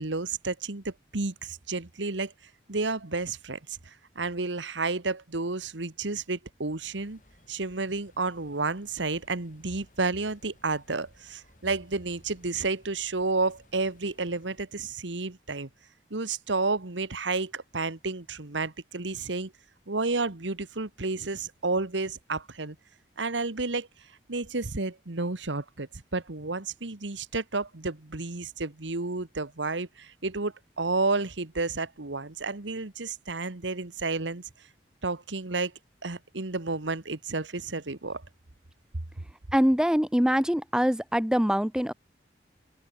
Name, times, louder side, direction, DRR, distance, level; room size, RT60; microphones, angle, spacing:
voice 1, 0.0-2.3 2.7-7.2 7.5-15.7 16.1-19.5 19.9-22.8 23.2-23.9 24.3-34.4 35.0-35.7 36.0-38.2, right 3 dB, 90° right, 1.6 m, -31 dB
sound 1, 6.8-14.6, left 1 dB, 45° left, 4.8 m, -60 dB
voice 2, 39.5-41.9, equal, 5° right, 0.8 m, -24 dB
open air
head